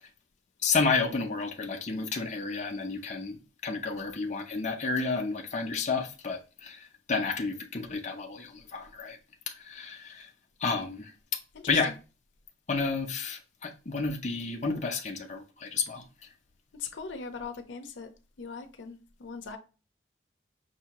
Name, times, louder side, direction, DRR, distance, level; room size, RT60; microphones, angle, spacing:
voice 1, 0.6-9.2 9.5-10.3 10.6-11.1 11.7-11.9 12.7-16.0, left 4 dB, 40° left, 0.6 m, -31 dB
voice 2, 11.5-11.9 16.8-18.1 18.4-19.6, left 5 dB, 85° left, 0.6 m, -40 dB
5.6 x 2.7 x 2.9 m
head